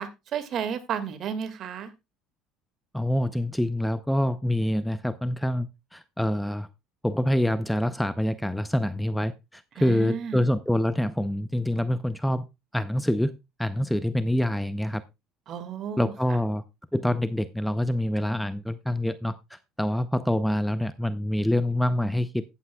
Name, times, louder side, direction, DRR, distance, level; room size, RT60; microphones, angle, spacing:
voice 1, 0.0-1.9 9.8-10.4 15.5-16.1, right 7 dB, 50° right, 1.8 m, -32 dB
voice 2, 2.9-6.7 7.0-12.4 12.7-13.3 13.6-15.0 16.0-16.6 16.9-22.4, left 1 dB, 5° left, 0.6 m, -26 dB
15.0 x 8.4 x 2.3 m
supercardioid pair, 95°, 0 cm